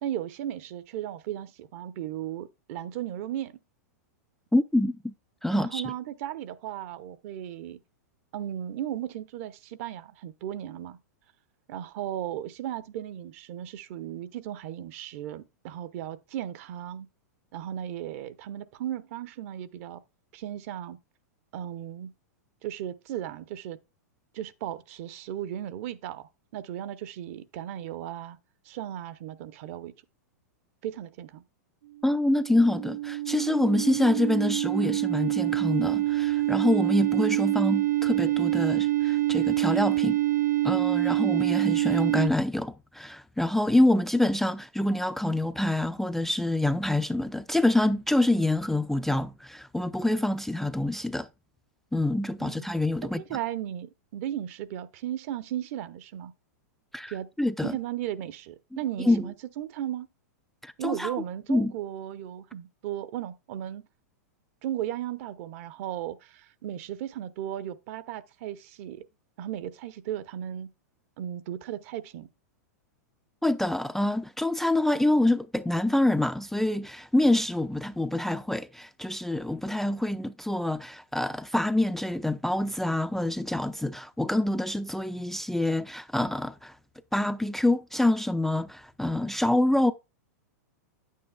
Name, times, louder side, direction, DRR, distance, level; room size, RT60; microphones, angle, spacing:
voice 1, 0.0-3.5 5.5-7.8 8.3-11.0 11.7-17.1 17.5-20.0 20.3-21.0 21.5-22.1 22.6-23.8 24.3-28.4 28.6-29.9 30.8-31.4 52.4-52.7 53.0-56.3 57.1-57.3 57.6-60.1 60.8-63.9 64.6-69.1 69.4-70.7 71.2-72.3, right 11 dB, 55° right, 0.8 m, -36 dB
voice 2, 4.5-5.1 5.4-5.8 32.0-40.2 40.6-51.3 51.9-53.2 56.9-57.8 59.1-59.2 60.6-61.2 61.5-61.7 73.4-86.8 87.1-89.9, left 1 dB, 5° left, 0.3 m, -26 dB
sound 1, 32.1-42.3, right 16 dB, 85° right, 0.6 m, -26 dB
9.2 x 8.5 x 2.3 m
hypercardioid pair, 120°, 9 cm